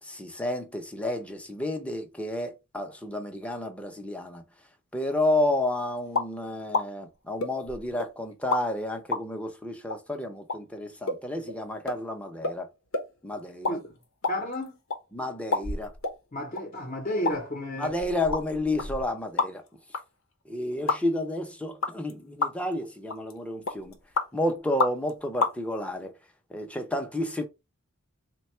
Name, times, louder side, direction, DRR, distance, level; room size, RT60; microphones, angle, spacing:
voice 1, 0.0-4.4 4.9-12.7 13.2-13.8 15.1-15.9 17.8-19.6 20.5-24.0 24.3-26.1 26.5-27.4, left 1 dB, 5° left, 0.6 m, -31 dB
sound 1, 6.1-6.3 6.7-6.9 7.4-8.1 8.5-8.6 9.1-9.2 9.9-10.0 10.5-10.6 11.1-11.2 11.5-11.6 11.9-12.0 12.4-12.6 12.9-13.1 13.5-13.8 14.0-15.0 15.5-16.2 16.6-16.7 17.2-17.4 17.8-19.7 19.9-20.0 20.9-21.0 21.8-22.1 22.4-22.7 23.1-23.3 23.7-24.3 24.8-25.1 25.4-25.5, left 3 dB, 80° left, 0.8 m, -29 dB
voice 2, 14.3-14.8 16.3-17.9, equal, 35° left, 0.8 m, -32 dB
3.5 x 2.2 x 4.3 m
head